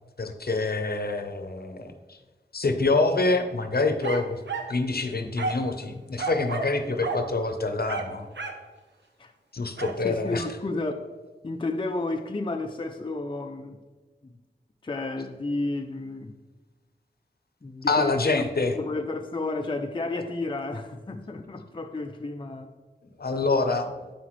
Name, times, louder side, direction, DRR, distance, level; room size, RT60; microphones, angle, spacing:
voice 1, 0.2-2.2 2.5-4.4 4.7-8.3 9.5-10.4 17.9-18.8 23.2-23.9, left 3 dB, 60° left, 0.8 m, -26 dB
sound 1, 4.0-4.8 5.4-5.7 6.2-6.8 7.0-7.3 7.9-8.7 9.8-10.0, right 4 dB, 80° right, 0.8 m, -32 dB
voice 2, 10.0-11.1 11.4-13.8 14.2-14.4 14.8-16.3 17.6-18.5 18.8-22.7, left 2 dB, 30° left, 0.5 m, -32 dB
8.2 x 5.8 x 3.1 m
wide cardioid pair, 45°, 18 cm